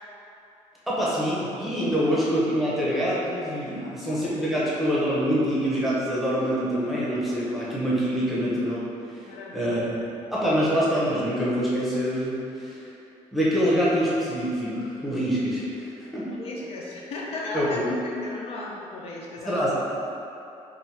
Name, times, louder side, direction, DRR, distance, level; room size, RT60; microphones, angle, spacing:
voice 1, 0.9-8.8 9.1-10.0 10.3-12.9 13.3-16.3 17.5-17.8 19.4-19.7, equal, ahead, -8 dB, 0.8 m, -25 dB
voice 2, 3.8-4.4 9.2-10.0 16.3-17.8 18.2-19.6, left 2 dB, 55° left, -3 dB, 0.5 m, -36 dB
3.6 x 2.6 x 4.3 m, 2.8 s
cardioid pair, 155°, 13 cm